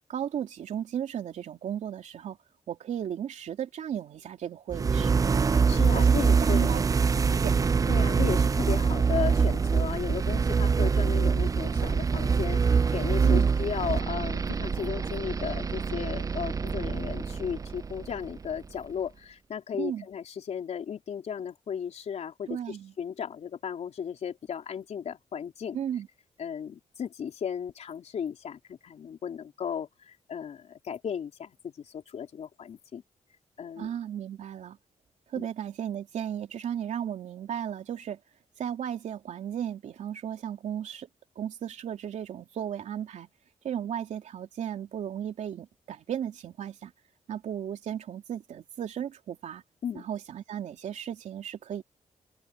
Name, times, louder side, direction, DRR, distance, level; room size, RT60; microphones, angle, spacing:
voice 1, 0.1-2.4 2.7-5.2 5.9-6.8 7.2-7.8 13.2-13.5 19.8-20.1 22.5-22.9 25.7-26.1 33.8-34.8 35.3-38.2 38.6-41.1 41.3-43.3 43.6-46.9 47.3-49.6 49.9-51.8, right 9 dB, 80° right, 3.3 m, -35 dB
sound 1, 4.7-18.6, right 5 dB, 30° right, 0.5 m, -25 dB
voice 2, 5.5-6.7 7.9-25.8 26.4-33.0 33.6-33.9 35.4-35.5 49.8-50.0, left 7 dB, 65° left, 4.2 m, -35 dB
cardioid pair, 115°, 12 cm